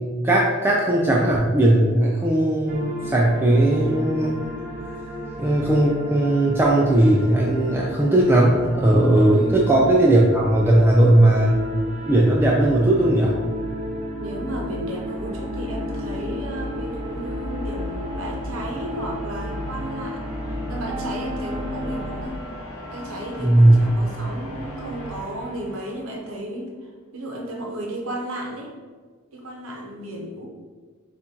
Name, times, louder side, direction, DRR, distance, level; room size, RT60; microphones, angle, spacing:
voice 1, 0.0-4.4 5.4-11.6 12.0-13.3 23.4-23.8, right 1 dB, 10° right, -4 dB, 0.4 m, -18 dB
sound 1, 2.7-22.3, equal, 35° right, 0.8 m, -33 dB
voice 2, 9.3-9.7 14.2-22.4 22.9-26.7 27.1-28.7 29.3-30.5, right 1 dB, 70° right, 0 dB, 0.9 m, -34 dB
sound 2, 13.3-26.4, left 1 dB, 70° left, 1.3 m, -37 dB
7.3 x 2.5 x 2.9 m, 1.5 s
head